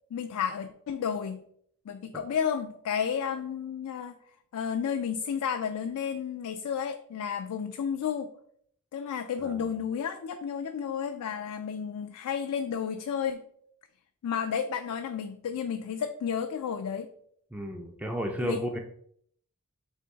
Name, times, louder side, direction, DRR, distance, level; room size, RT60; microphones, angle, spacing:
voice 1, 0.1-1.4 1.9-4.1 4.5-8.3 8.9-13.4 14.2-17.1 18.4-18.6, left 7 dB, 75° left, 6 dB, 0.3 m, -32 dB
voice 2, 17.5-18.8, equal, 5° right, 2 dB, 0.3 m, -33 dB
3.5 x 2.8 x 3.9 m, 0.65 s
head